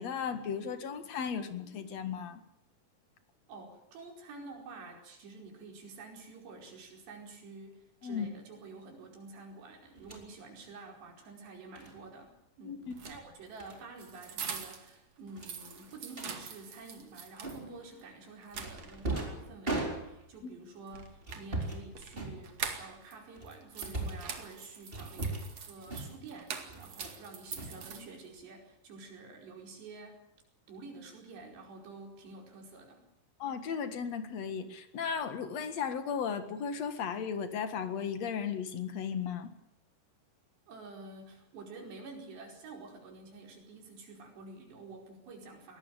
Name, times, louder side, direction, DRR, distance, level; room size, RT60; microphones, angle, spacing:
voice 1, 0.0-2.4 8.0-8.3 12.6-12.8 20.4-20.5 33.4-39.5, left 7 dB, 50° left, 9 dB, 2.4 m, -35 dB
voice 2, 3.5-25.4 25.7-30.2 30.7-33.1 40.7-45.8, right 3 dB, 85° right, 2 dB, 7.1 m, -49 dB
sound 1, 10.0-10.3 11.8-12.0 12.8-13.2 13.6-13.8 14.1-14.3 14.6-14.7 15.4-16.3 17.4-17.9 18.5-20.4 21.2-21.8 22.1-22.8 23.3-24.3 24.9-25.6 25.9-26.3 26.7-27.2 27.5-28.4, right 2 dB, 15° right, 4.0 m, -39 dB
sound 2, 12.9-15.0 15.3-17.6 18.0-18.1 18.4-19.3 20.9-23.2 23.5-28.4, right 6 dB, 45° right, 2.9 m, -44 dB
22.0 x 18.0 x 9.0 m, 0.77 s
omnidirectional pair, 4.8 m